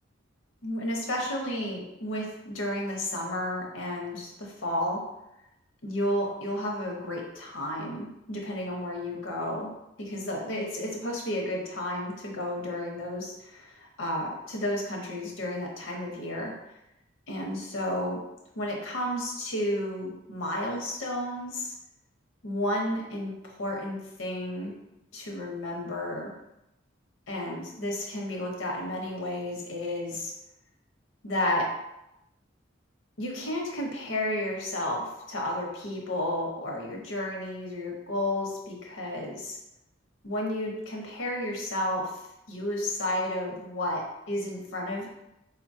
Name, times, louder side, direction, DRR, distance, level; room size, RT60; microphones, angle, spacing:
voice 1, 0.6-5.0 5.8-9.7 10.0-16.5 17.3-18.2 18.6-21.7 22.4-24.7 25.1-26.3 27.3-30.3 31.2-31.6 33.2-39.6 40.2-42.1 42.5-45.1, left 1 dB, 90° left, -1 dB, 0.8 m, -32 dB
4.0 x 2.2 x 2.6 m, 0.88 s
head